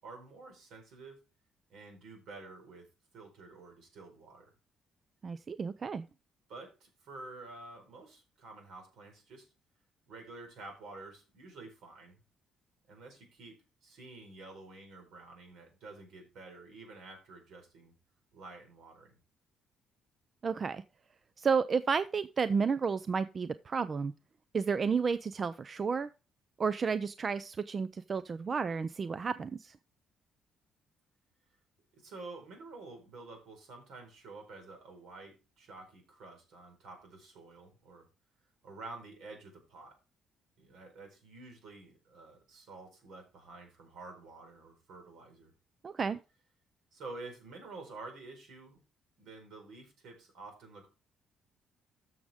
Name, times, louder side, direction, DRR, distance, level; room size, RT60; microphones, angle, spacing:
voice 1, 0.0-1.2 1.7-2.9 3.1-4.5 6.5-9.5 10.1-12.2 12.9-13.6 13.8-17.9 18.3-19.2 31.9-38.0 38.6-39.9 40.6-45.5 46.9-48.8 49.2-50.9, right 3 dB, 70° right, 3 dB, 4.5 m, -49 dB
voice 2, 5.2-6.0 20.4-20.8 21.4-24.1 24.5-26.1 26.6-29.8 45.8-46.2, right 5 dB, 30° right, 14 dB, 0.4 m, -31 dB
13.5 x 6.3 x 3.5 m, 0.30 s
cardioid pair, 155°, 0 cm